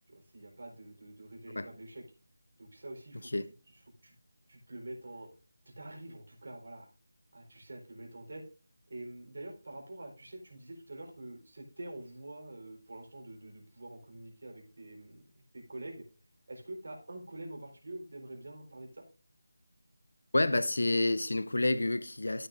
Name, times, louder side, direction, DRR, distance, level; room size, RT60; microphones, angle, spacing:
voice 1, 0.1-2.0 2.6-3.3 3.7-4.1 4.5-5.3 5.7-6.9 7.3-8.5 8.9-16.0 16.5-19.0, right 1 dB, 45° right, 4.1 m, -46 dB
voice 2, 20.3-22.5, left 2 dB, 90° left, 0.9 m, -29 dB
13.5 x 8.7 x 2.6 m
figure-of-eight pair, 180°, 0 cm